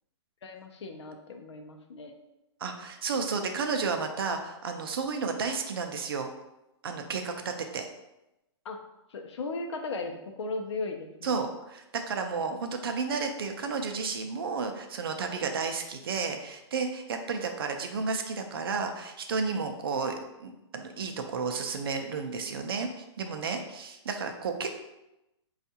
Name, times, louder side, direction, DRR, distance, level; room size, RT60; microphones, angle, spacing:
voice 1, 0.4-2.1 8.6-8.8 9.1-11.4, left 3 dB, 75° left, 4 dB, 0.6 m, -37 dB
voice 2, 2.6-6.3 6.8-7.9 11.2-24.7, right 5 dB, 55° right, 5 dB, 0.4 m, -32 dB
4.4 x 2.4 x 2.7 m, 0.94 s
hypercardioid pair, 180°, 15 cm